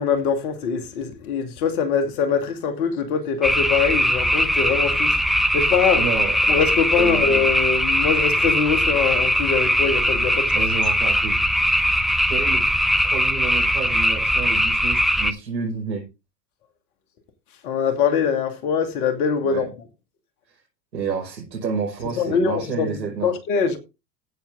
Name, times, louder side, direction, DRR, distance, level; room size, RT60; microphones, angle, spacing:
voice 1, 0.0-5.1 5.5-6.0 6.5-10.5 17.6-19.7 22.2-23.8, left 6 dB, 60° left, 2.6 m, -23 dB
sound 1, 3.4-15.3, equal, ahead, 0.9 m, -20 dB
voice 2, 5.9-6.3 7.0-7.2 10.5-11.4 12.3-12.6 13.0-16.0 19.4-19.7 20.5-20.6 20.9-23.3, right 5 dB, 85° right, 6.1 m, -29 dB
16.0 x 7.0 x 3.8 m
hypercardioid pair, 90°, 49 cm